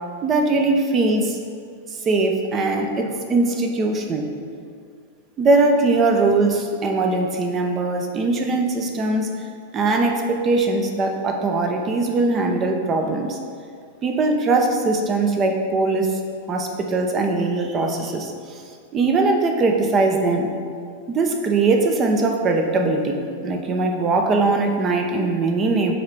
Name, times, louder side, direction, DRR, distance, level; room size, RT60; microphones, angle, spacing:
voice 1, 0.2-1.4 1.9-4.3 5.4-9.3 9.7-13.4 14.0-16.1 16.5-18.6 18.9-20.5 21.1-26.0, right 3 dB, 30° right, 3 dB, 0.8 m, -21 dB
6.2 x 3.9 x 4.6 m, 2.2 s
hypercardioid pair, 100°, 0 cm